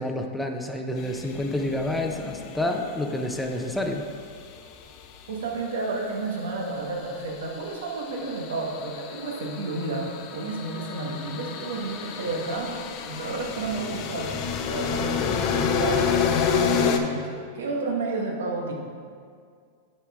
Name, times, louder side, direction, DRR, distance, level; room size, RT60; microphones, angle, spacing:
voice 1, 0.0-4.0, left 1 dB, 5° left, 2 dB, 0.6 m, -29 dB
sound 1, 1.0-5.3 6.8-17.0, left 6 dB, 50° left, 0.6 m, -30 dB
voice 2, 5.3-14.4 14.6-18.7, right 3 dB, 75° right, -1 dB, 1.3 m, -31 dB
9.4 x 4.3 x 3.6 m, 2.1 s
hypercardioid pair, 110°, 0 cm